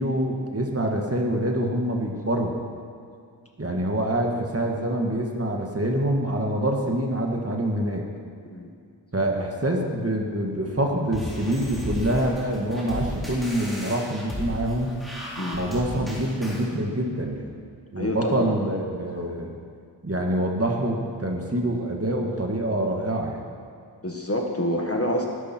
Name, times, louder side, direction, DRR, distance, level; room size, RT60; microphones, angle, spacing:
voice 1, 0.0-2.5 3.6-8.0 9.1-14.9 15.5-17.5 17.9-19.5 20.0-23.4, right 1 dB, 30° right, 1 dB, 1.9 m, -26 dB
sound 1, 11.1-16.7, equal, ahead, 4.2 m, -35 dB
voice 2, 18.0-18.6 19.1-19.3 24.0-25.3, left 1 dB, 30° left, 1 dB, 1.8 m, -27 dB
20.0 x 11.5 x 4.6 m, 2.3 s
wide cardioid pair, 90°, 44 cm